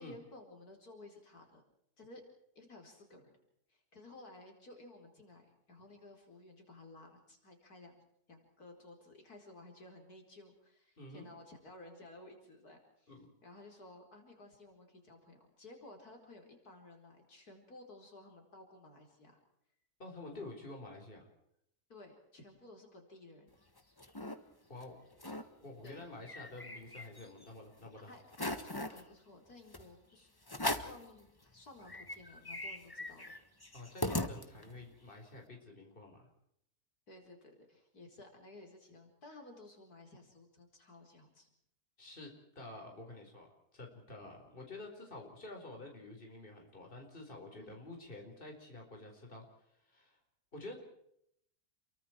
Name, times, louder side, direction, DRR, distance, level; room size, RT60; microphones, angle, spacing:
voice 1, 0.0-1.6 2.0-2.2 2.5-3.3 3.7-7.9 8.3-13.1 13.4-19.4 21.9-23.6 25.8-26.0 28.1-30.3 30.7-33.3 37.1-41.5 47.6-47.8, left 2 dB, 75° left, 2 dB, 5.0 m, -55 dB
voice 2, 11.0-11.3 13.1-13.3 20.0-21.3 24.7-25.0 25.6-28.2 33.7-36.3 42.0-49.4 49.8-50.2 50.5-50.8, left 2 dB, 35° left, 2 dB, 4.7 m, -49 dB
sound 1, 23.5-24.4 24.8-24.9 25.1-25.5 25.9-27.5 27.9-28.0 28.3-29.0 29.7-29.9 30.5-31.0 31.5-31.6 31.8-34.8, left 1 dB, 15° left, 1.5 m, -39 dB
29.5 x 23.5 x 4.6 m, 0.75 s
omnidirectional pair, 1.6 m